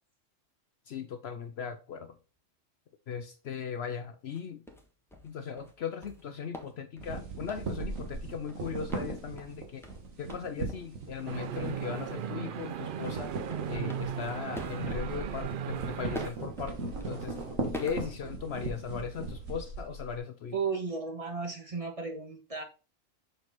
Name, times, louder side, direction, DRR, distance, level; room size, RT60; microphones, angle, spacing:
voice 1, 0.9-2.1 3.1-4.6 5.2-9.8 10.2-13.3 13.7-17.3 17.8-20.6, left 6 dB, 60° left, 0.8 m, -38 dB
sound 1, 4.3-4.4 4.7-8.2 8.5-10.9 11.2-11.4 11.6-11.9 12.1-18.8, left 1 dB, ahead, 1.0 m, -46 dB
sound 2, 7.0-12.5 12.7-20.2, right 3 dB, 85° right, 1.8 m, -39 dB
sound 3, 11.3-16.3, right 8 dB, 60° right, 0.5 m, -36 dB
voice 2, 20.5-22.6, right 5 dB, 30° right, 1.3 m, -34 dB
6.5 x 4.6 x 4.0 m
omnidirectional pair, 1.3 m